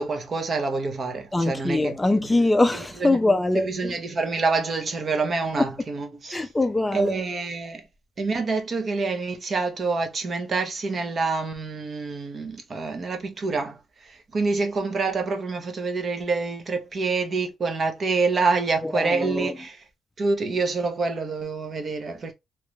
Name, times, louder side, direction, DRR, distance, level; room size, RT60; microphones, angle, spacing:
voice 1, 0.0-2.3 2.7-3.2 3.5-6.5 6.9-7.8 8.2-19.8 20.2-22.3, right 4 dB, 45° right, 0.8 m, -27 dB
voice 2, 1.3-3.9 6.3-7.2 18.8-19.5, left 2 dB, 15° left, 0.3 m, -23 dB
3.1 x 2.4 x 2.9 m
cardioid pair, 90°, 0 cm